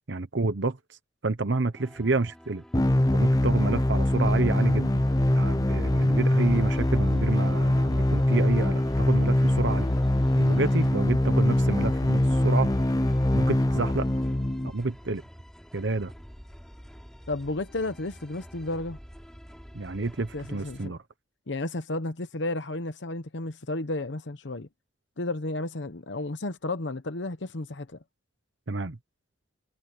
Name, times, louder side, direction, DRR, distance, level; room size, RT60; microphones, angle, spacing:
voice 1, 0.1-1.0 1.2-2.6 3.1-5.0 5.3-9.9 10.4-12.7 13.3-14.1 14.6-15.2 15.7-16.1 19.7-21.0 28.7-29.0, right 3 dB, 65° right, 1.0 m, -29 dB
sound 1, 1.7-20.9, equal, 5° left, 4.9 m, -49 dB
sound 2, 2.7-14.7, left 1 dB, 20° left, 0.7 m, -23 dB
voice 2, 17.3-19.0 20.3-20.9 21.5-24.7 25.2-28.0, left 2 dB, 65° left, 1.0 m, -32 dB
head